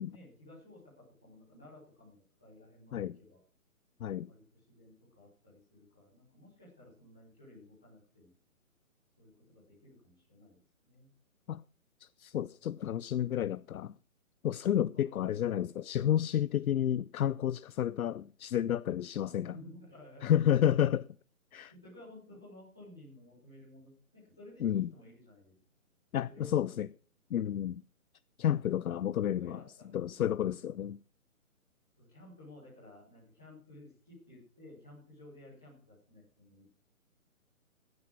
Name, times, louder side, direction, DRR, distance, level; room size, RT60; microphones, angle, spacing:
voice 1, 0.0-3.4 4.3-4.4 4.7-8.3 9.2-11.1 14.9-15.1 19.2-20.6 21.7-25.6 26.3-26.7 29.3-30.2 30.5-30.6 32.0-36.6, left 1 dB, 5° left, 0.6 m, -55 dB
voice 2, 12.0-13.9 14.4-19.6 20.2-21.0 21.5-21.7 24.6-24.9 26.1-26.9 27.3-27.8 28.4-29.6 29.9-31.0, left 10 dB, 75° left, 0.5 m, -30 dB
14.0 x 9.6 x 6.0 m
hypercardioid pair, 165°, 43 cm